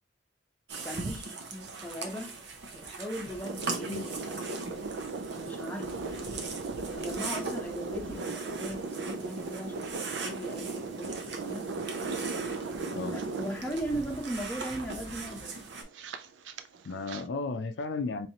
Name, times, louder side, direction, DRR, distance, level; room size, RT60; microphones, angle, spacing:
sound 1, 0.7-15.8, right 4 dB, 65° right, 0.8 m, -41 dB
voice 1, 0.8-2.3 2.7-4.7 5.3-6.7 6.9-11.7 13.1-15.5, right 1 dB, 10° left, 0.8 m, -39 dB
sound 2, 3.4-17.2, right 3 dB, 85° right, 0.4 m, -38 dB
voice 2, 16.8-18.3, left 3 dB, 65° left, 0.4 m, -34 dB
4.1 x 3.2 x 2.8 m
head